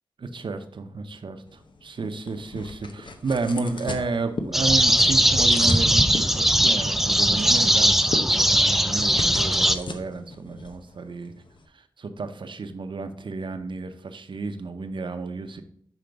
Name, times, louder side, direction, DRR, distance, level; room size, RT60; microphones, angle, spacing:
voice 1, 0.2-11.3 11.7-15.6, right 3 dB, 70° right, 8 dB, 0.7 m, -32 dB
sound 1, 1.5-11.7, left 3 dB, 70° left, 0.8 m, -38 dB
sound 2, 4.5-9.7, equal, 5° right, 0.4 m, -19 dB
5.8 x 5.2 x 4.6 m, 0.65 s
wide cardioid pair, 70°, 9 cm